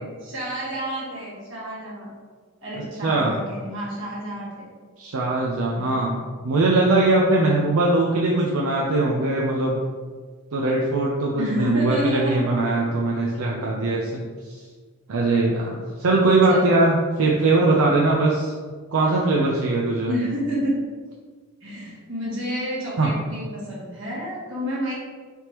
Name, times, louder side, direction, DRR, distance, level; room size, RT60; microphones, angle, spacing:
voice 1, 0.0-2.1 2.6-4.7 5.7-6.0 11.4-12.5 16.5-16.8 20.0-20.7 21.6-24.9, equal, 55° right, -6 dB, 1.5 m, -29 dB
voice 2, 3.0-3.3 5.0-9.8 10.5-14.2 14.5-14.6 15.1-18.5 18.9-20.1 23.0-23.1, right 2 dB, 75° right, -2 dB, 0.5 m, -21 dB
3.4 x 3.0 x 4.4 m, 1.5 s
head